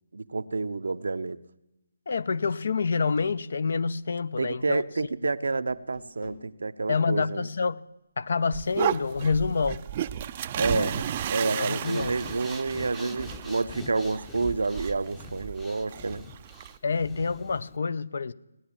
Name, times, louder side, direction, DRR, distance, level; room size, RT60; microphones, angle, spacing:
voice 1, 0.1-1.4 4.4-7.5 10.6-11.0 11.3-16.2, right 3 dB, 70° right, 0.7 m, -29 dB
voice 2, 2.1-4.8 6.9-7.8 8.2-9.8 10.7-10.9 11.4-12.1 16.8-18.3, left 5 dB, 60° left, 0.6 m, -27 dB
sound 1, 3.2-3.4 4.9-5.3 5.7-6.5 9.0-9.7 12.6-13.6, left 4 dB, 25° left, 1.2 m, -50 dB
sound 2, 8.5-16.8, right 10 dB, 30° right, 0.4 m, -34 dB
Breathing, 11.7-17.8, left 2 dB, 5° left, 0.7 m, -46 dB
17.5 x 10.0 x 7.2 m
figure-of-eight pair, 155°, 0 cm